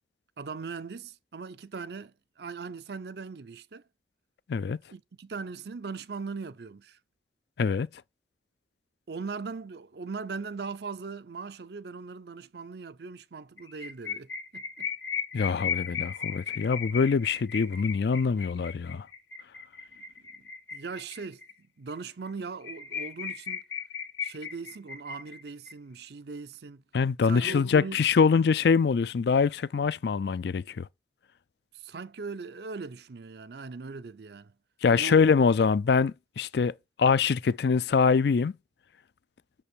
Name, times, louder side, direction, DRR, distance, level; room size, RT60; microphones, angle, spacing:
voice 1, 0.4-3.8 4.9-7.0 9.1-14.9 19.9-20.0 20.3-23.6 24.2-26.8 27.2-28.0 31.7-34.5 34.9-35.3, right 4 dB, 60° right, 0.6 m, -40 dB
sound 1, 13.6-21.5 21.9-22.0 22.3-22.4 22.6-25.7, left 7 dB, 85° left, 1.6 m, -36 dB
voice 2, 15.3-19.1 26.9-30.9 34.8-38.5, left 5 dB, 60° left, 0.4 m, -24 dB
6.7 x 5.5 x 6.1 m
head